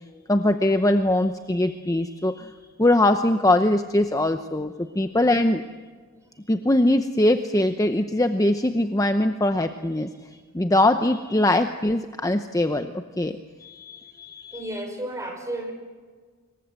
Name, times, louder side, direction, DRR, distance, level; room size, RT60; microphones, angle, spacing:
voice 1, 0.3-2.5 2.8-5.6 6.5-10.1 10.5-14.6, left 1 dB, 15° left, 7 dB, 0.8 m, -22 dB
voice 2, 14.5-15.7, right 1 dB, 15° right, 3 dB, 5.4 m, -32 dB
26.0 x 23.0 x 7.7 m, 1.5 s
head